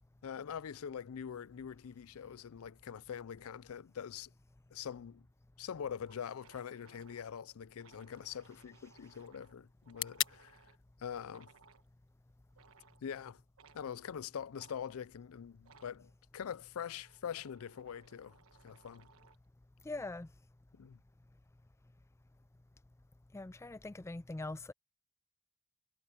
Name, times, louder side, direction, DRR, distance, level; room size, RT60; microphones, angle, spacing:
voice 1, 0.2-4.3 4.7-5.3 5.6-10.6 11.0-11.5 13.0-13.4 13.7-18.4 18.6-19.1 20.7-21.0, left 8 dB, 80° left, 0.4 m, -44 dB
sound 1, 5.3-5.4 5.7-5.8 6.0-10.8 11.3-11.9 12.5-13.0 13.6-13.8 14.5-14.8 15.6-16.0 16.7-19.5, right 5 dB, 75° right, 1.2 m, -64 dB
sound 2, 5.9-13.9, left 12 dB, 60° left, 1.5 m, -47 dB
voice 2, 19.8-20.3 23.3-24.7, left 2 dB, 15° left, 0.4 m, -42 dB
head